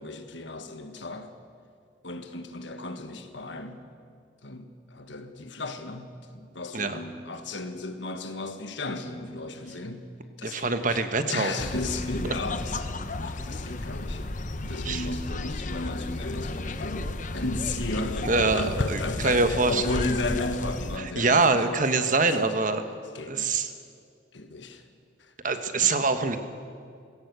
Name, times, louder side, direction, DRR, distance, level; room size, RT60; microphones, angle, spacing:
voice 1, 0.0-1.3 2.0-3.8 4.4-10.1 10.4-11.0 11.3-12.8 13.1-14.2 14.6-22.5 23.1-23.6 24.3-24.8 25.2-25.3 25.8-26.1, left 2 dB, 65° left, 8 dB, 1.5 m, -34 dB
voice 2, 10.4-11.5 14.8-15.0 18.2-19.8 21.0-22.8 23.3-23.7 25.4-26.4, right 3 dB, 40° right, 9 dB, 1.2 m, -24 dB
sound 1, 11.6-21.0, left 2 dB, 40° left, 0.9 m, -33 dB
19.5 x 17.0 x 8.1 m, 2.3 s
head